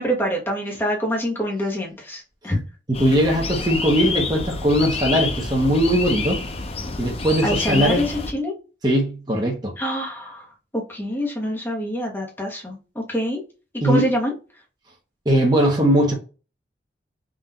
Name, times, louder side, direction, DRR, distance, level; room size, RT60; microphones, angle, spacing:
voice 1, 0.0-2.6 7.4-8.5 9.8-10.4 10.7-13.4 13.8-14.3, equal, 10° left, 0.9 m, -25 dB
sound 1, 2.9-8.3, left 4 dB, 35° left, 0.5 m, -28 dB
voice 2, 2.9-6.4 7.0-8.0 8.8-9.7 13.8-14.0 15.3-16.1, equal, 20° right, 0.8 m, -19 dB
3.8 x 2.4 x 4.1 m
head